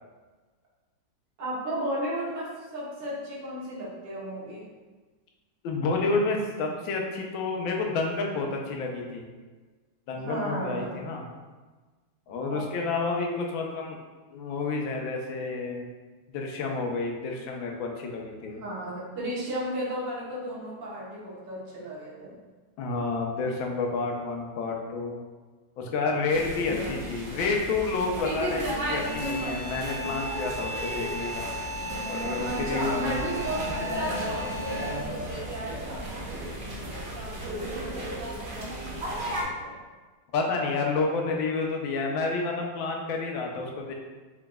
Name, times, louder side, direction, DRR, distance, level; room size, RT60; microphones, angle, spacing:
voice 1, 1.4-4.7 10.2-11.0 12.5-12.7 18.5-22.4 26.6-26.8 32.4-39.8, right 1 dB, 70° right, -7 dB, 1.9 m, -35 dB
voice 2, 5.6-9.2 10.1-11.3 12.3-14.0 14.3-15.9 16.3-18.6 22.8-25.2 25.8-31.5 32.1-33.2 40.3-43.9, left 3 dB, 85° left, 1 dB, 1.5 m, -29 dB
sound 1, 26.3-39.4, right 1 dB, 50° right, 0.6 m, -34 dB
sound 2, 29.0-35.2, left 1 dB, 70° left, 1.2 m, -37 dB
5.9 x 3.7 x 2.3 m, 1.3 s
omnidirectional pair, 2.1 m